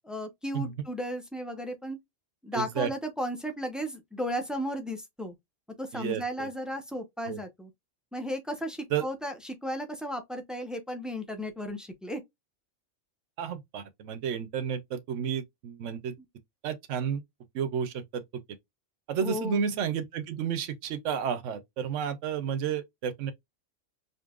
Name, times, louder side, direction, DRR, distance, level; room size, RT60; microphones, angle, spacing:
voice 1, 0.0-2.0 2.4-5.3 5.8-7.7 8.1-12.2 19.2-19.6, equal, ahead, 0.8 m, -34 dB
voice 2, 2.5-2.9 5.9-6.5 7.3-7.4 8.9-9.1 13.4-16.1 16.6-17.2 17.5-18.2 19.1-23.3, right 7 dB, 70° right, 1.1 m, -31 dB
5.3 x 2.9 x 2.4 m
omnidirectional pair, 1.3 m